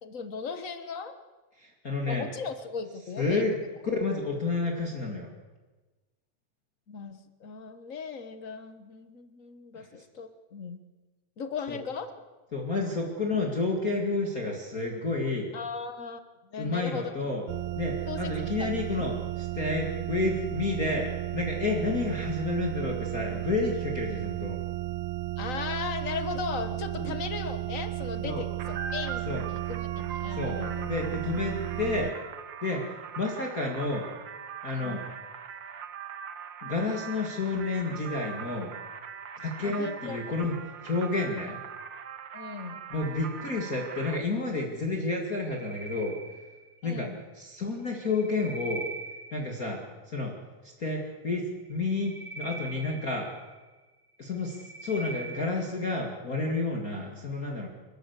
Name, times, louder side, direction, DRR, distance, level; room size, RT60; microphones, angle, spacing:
voice 1, 0.0-1.2 2.1-3.5 6.9-10.8 11.4-12.1 15.5-16.2 16.5-17.3 18.1-18.8 25.4-29.2 29.5-30.9 34.7-35.0 39.6-40.2 42.3-42.8 46.8-47.2, left 5 dB, 55° left, 10 dB, 0.9 m, -37 dB
voice 2, 1.6-2.3 3.2-3.6 4.0-5.3 9.7-9.9 11.7-11.8 12.5-15.5 16.6-17.4 17.8-24.6 27.0-27.1 28.2-28.4 29.3-29.5 30.3-30.6 30.9-32.1 32.6-34.1 34.6-35.0 36.6-38.7 39.4-40.6 40.8-41.6 42.9-46.2 46.8-47.1 47.3-48.9 49.3-49.8 50.1-50.3 50.6-53.3 54.2-57.7, left 3 dB, 30° left, 0 dB, 2.5 m, -30 dB
sound 1, 17.5-32.1, right 17 dB, 75° right, 2.0 m, -34 dB
sound 2, 28.6-44.2, right 7 dB, 55° right, 1.4 m, -41 dB
sound 3, 45.4-46.9 47.8-49.7 51.6-53.7 54.2-55.8, right 3 dB, 35° right, 3.3 m, -42 dB
29.0 x 13.0 x 8.2 m, 1.2 s
omnidirectional pair, 3.4 m